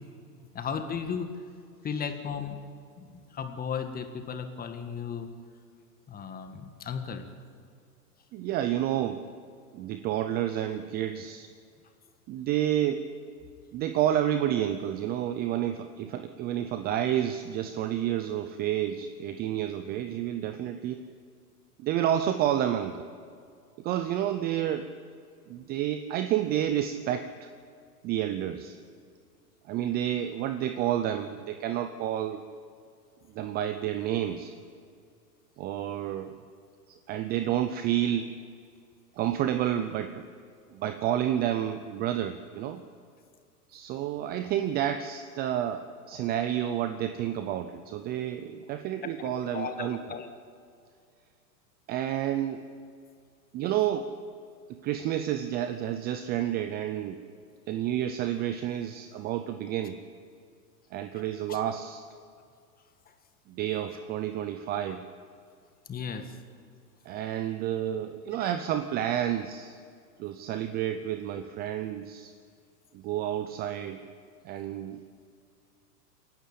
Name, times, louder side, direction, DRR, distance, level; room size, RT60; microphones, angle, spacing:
voice 1, 0.5-1.3 1.8-2.6 3.0-5.3 6.1-7.2 49.0-50.3 61.5-61.6 65.9-66.3, left 6 dB, 20° left, 7 dB, 1.7 m, -35 dB
voice 2, 8.3-9.3 9.7-11.5 12.3-13.1 13.7-21.0 21.8-23.0 23.8-24.9 25.5-27.5 28.0-28.8 29.7-32.4 33.3-34.5 35.6-36.3 36.9-38.3 39.2-40.2 40.7-42.8 43.7-50.0 51.9-52.6 53.5-54.1 54.7-57.2 57.7-60.0 60.9-62.0 63.5-65.0 67.1-69.8 70.2-72.3 72.9-74.0 74.4-75.0, right 11 dB, 20° right, 10 dB, 0.5 m, -30 dB
27.5 x 11.5 x 8.6 m, 2.3 s
hypercardioid pair, 120°, 48 cm